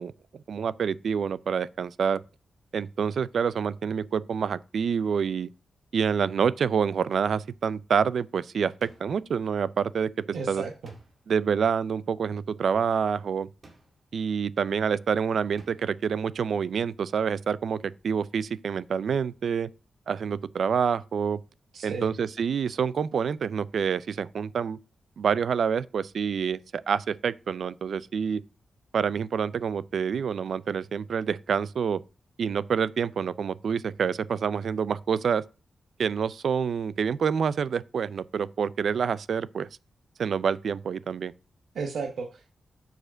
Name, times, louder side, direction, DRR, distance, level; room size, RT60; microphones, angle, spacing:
voice 1, 0.0-2.2 2.7-5.5 5.9-10.1 10.5-10.6 11.3-13.5 14.1-19.7 20.1-21.4 21.8-24.8 25.2-28.4 28.9-32.0 32.4-35.4 36.0-39.7 40.2-41.3, right 6 dB, 70° right, 0.4 m, -27 dB
sound 1, 8.8-9.4 10.8-11.4 13.6-14.2 15.6-16.0, right 2 dB, 40° right, 2.1 m, -55 dB
voice 2, 10.3-10.9 21.7-22.1 41.7-42.5, right 5 dB, 90° right, 1.0 m, -34 dB
6.6 x 5.0 x 6.2 m
wide cardioid pair, 145°, 0 cm